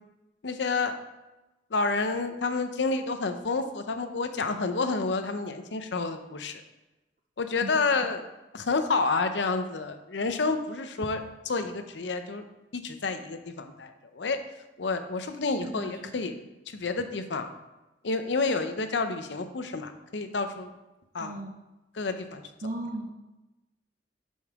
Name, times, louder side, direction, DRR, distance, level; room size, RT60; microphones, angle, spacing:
voice 1, 0.4-0.9 1.7-6.6 7.4-8.2 8.5-12.4 12.7-14.4 14.8-16.3 16.7-17.5 18.0-20.7 21.1-21.4 21.9-22.4, left 3 dB, 80° left, 8 dB, 0.7 m, -29 dB
voice 2, 21.2-21.5 22.6-23.1, right 2 dB, 50° right, 1 dB, 0.7 m, -35 dB
9.5 x 5.4 x 3.6 m, 1.0 s
head